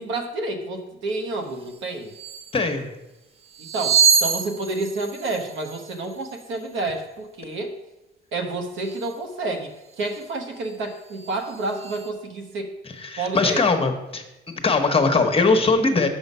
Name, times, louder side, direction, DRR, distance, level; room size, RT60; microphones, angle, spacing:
voice 1, 0.0-2.1 3.6-7.7 8.3-12.7 13.2-13.6, right 2 dB, 75° right, 4 dB, 1.2 m, -29 dB
sound 1, 1.7-1.8 2.1-2.6 3.4-6.6 8.8-9.2 9.9-10.2 10.6-12.1, right 6 dB, 30° right, 0.8 m, -26 dB
voice 2, 2.5-2.9 13.0-14.2 14.6-16.1, left 3 dB, 30° left, 4 dB, 1.1 m, -20 dB
6.8 x 5.5 x 5.5 m, 1.0 s
cardioid pair, 90°, 20 cm